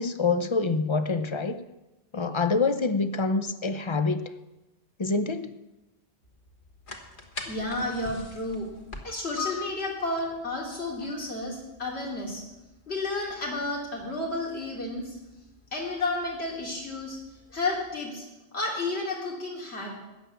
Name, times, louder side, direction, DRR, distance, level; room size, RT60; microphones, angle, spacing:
voice 1, 0.0-1.6 2.1-4.3 5.0-5.5, left 4 dB, 35° left, 11 dB, 0.6 m, -26 dB
sound 1, 6.2-18.0, left 5 dB, 55° left, 1.6 m, -45 dB
voice 2, 7.5-8.7 9.0-12.4 12.9-15.2 15.7-17.2 17.5-18.3 18.5-19.9, left 2 dB, 90° left, -2 dB, 3.1 m, -31 dB
13.5 x 9.2 x 6.8 m, 1.0 s
omnidirectional pair, 1.1 m